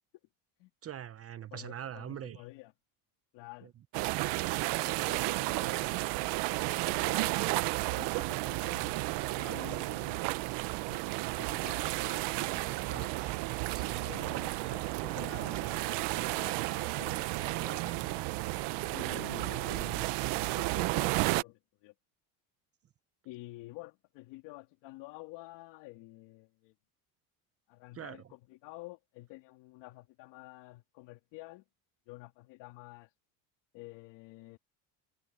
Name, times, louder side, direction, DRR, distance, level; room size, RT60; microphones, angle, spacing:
voice 1, 0.8-2.4 4.7-6.6 13.7-14.0 27.9-28.2, right 10 dB, 35° right, 0.9 m, -44 dB
voice 2, 1.5-2.7 3.3-3.7 4.8-5.8 6.7-7.4 7.9-13.3 14.0-18.1 18.9-21.9 23.2-26.7 27.7-31.6 32.1-33.1 33.7-34.6, left 20 dB, 75° left, 3.6 m, -50 dB
sound 1, 3.9-21.4, right 21 dB, 75° right, 1.1 m, -32 dB
sound 2, 11.9-19.2, left 2 dB, 10° left, 2.5 m, -55 dB
cardioid pair, 115°, 42 cm